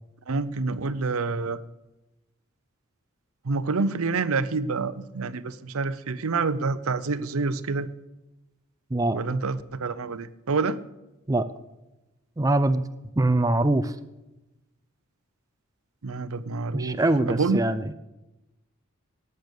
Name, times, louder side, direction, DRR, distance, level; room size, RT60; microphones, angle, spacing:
voice 1, 0.3-1.6 3.4-7.9 9.1-10.8 16.0-17.6, right 4 dB, 80° right, 15 dB, 0.7 m, -27 dB
voice 2, 12.4-12.8 13.2-13.9 16.7-17.8, right 2 dB, 15° right, 10 dB, 0.5 m, -23 dB
18.0 x 6.8 x 6.7 m, 0.99 s
head